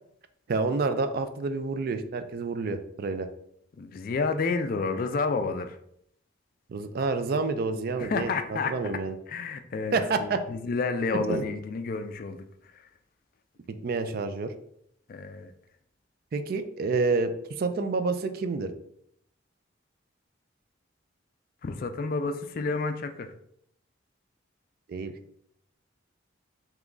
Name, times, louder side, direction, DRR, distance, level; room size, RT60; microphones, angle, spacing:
voice 1, 0.5-3.3 6.7-9.1 9.9-10.4 11.3-11.4 13.7-14.5 16.3-17.3 17.6-18.7 24.9-25.1, right 4 dB, 50° right, 10 dB, 0.3 m, -28 dB
voice 2, 3.8-5.8 8.0-8.7 9.3-12.4 12.7-12.8 15.1-15.5 21.6-23.3, left 4 dB, 45° left, 8 dB, 0.3 m, -30 dB
3.5 x 3.0 x 3.7 m, 0.71 s
head